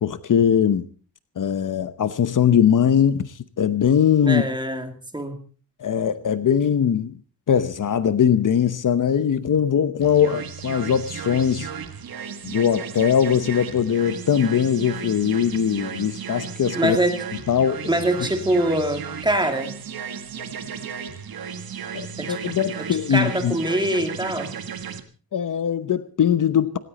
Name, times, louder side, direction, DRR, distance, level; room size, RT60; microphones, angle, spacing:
voice 1, 0.0-0.9 1.4-4.4 5.8-7.1 7.5-11.7 12.4-17.0 17.5-17.9 21.9-23.6 25.3-26.8, left 8 dB, 60° left, 0.9 m, -21 dB
voice 2, 4.2-5.4 16.7-17.2 17.8-19.7 22.2-22.4 22.8-24.5, right 1 dB, 10° right, 2.5 m, -24 dB
sound 1, 10.0-25.0, right 7 dB, 75° right, 1.7 m, -34 dB
18.5 x 17.5 x 4.2 m
wide cardioid pair, 165°, 36 cm